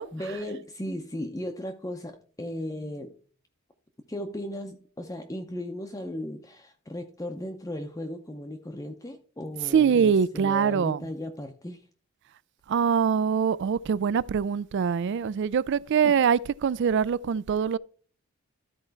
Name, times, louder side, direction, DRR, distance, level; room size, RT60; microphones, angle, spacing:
voice 1, 0.0-3.2 4.1-11.8 16.0-16.2, left 1 dB, 15° left, 0.6 m, -36 dB
voice 2, 9.7-11.0 12.7-17.8, right 7 dB, 55° right, 0.3 m, -23 dB
12.5 x 4.3 x 4.5 m
head